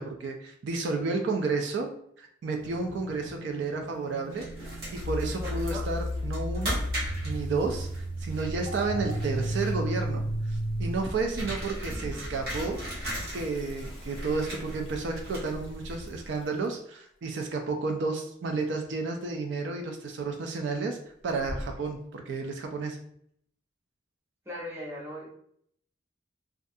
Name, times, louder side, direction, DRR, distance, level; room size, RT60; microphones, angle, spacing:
voice 1, 0.0-1.9 2.2-6.9 7.2-12.8 13.3-21.0 21.2-23.0, right 4 dB, 70° right, 3 dB, 0.3 m, -32 dB
sound 1, 2.6-10.9, equal, 90° left, 0.3 m, -33 dB
Toilet flush, 4.3-7.0 7.3-7.4 7.7-7.8 8.0-8.4 10.2-10.3 10.6-10.7 12.2-18.9 19.2-19.7 20.1-20.6 21.0-22.0, left 1 dB, 30° left, 0.6 m, -48 dB
sound 2, 4.3-16.4, equal, 50° right, 1.0 m, -38 dB
voice 2, 5.4-5.8 11.6-12.4 24.5-25.3, equal, 15° right, -5 dB, 0.6 m, -40 dB
2.4 x 2.3 x 2.6 m, 0.67 s
head